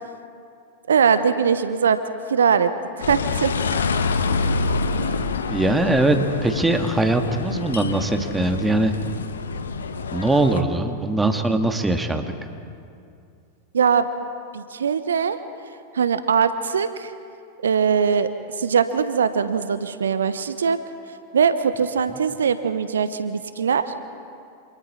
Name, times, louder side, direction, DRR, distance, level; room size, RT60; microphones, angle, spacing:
voice 1, 0.9-2.0 2.3-3.5 13.7-14.1 14.5-15.4 15.9-17.1 17.6-18.3 18.6-20.8 21.3-23.8, right 6 dB, 70° right, 12 dB, 0.9 m, -21 dB
sound 1, 3.0-10.6, left 4 dB, 70° left, 1.3 m, -26 dB
voice 2, 5.5-8.9 10.1-12.3, right 2 dB, 10° right, 5 dB, 2.0 m, -21 dB
28.5 x 26.5 x 4.3 m, 2.5 s
figure-of-eight pair, 90°, 0 cm